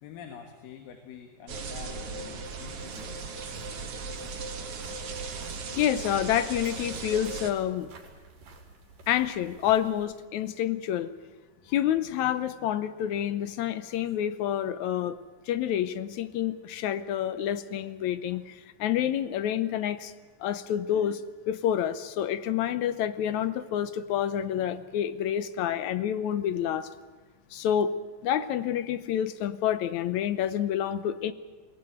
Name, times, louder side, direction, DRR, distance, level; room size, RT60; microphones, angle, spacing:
voice 1, 0.0-3.2, left 8 dB, 90° left, 5 dB, 3.2 m, -46 dB
sound 1, 1.5-7.5, right 4 dB, 50° right, 2.3 m, -37 dB
sound 2, 2.4-10.1, right 4 dB, 80° right, 4.6 m, -52 dB
voice 2, 5.7-7.9 9.1-11.1 11.7-15.2 15.5-20.1 20.4-26.9 27.5-27.9 28.2-31.3, left 10 dB, 70° left, 13 dB, 1.9 m, -28 dB
21.5 x 18.5 x 9.0 m, 1.4 s
omnidirectional pair, 3.9 m